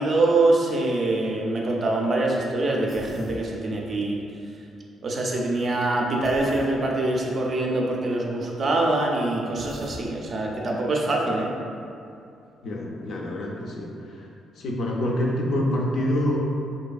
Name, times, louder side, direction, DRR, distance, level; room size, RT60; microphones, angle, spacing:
voice 1, 0.0-4.2 5.0-11.5, right 2 dB, 45° right, -1 dB, 0.4 m, -24 dB
Human voice, 2.9-3.4 6.2-6.7 9.6-10.0, equal, ahead, 0.5 m, -40 dB
voice 2, 12.6-14.3 14.6-16.4, left 1 dB, 65° left, -1 dB, 0.4 m, -26 dB
2.6 x 2.5 x 2.3 m, 2.5 s
cardioid pair, 90°, 0 cm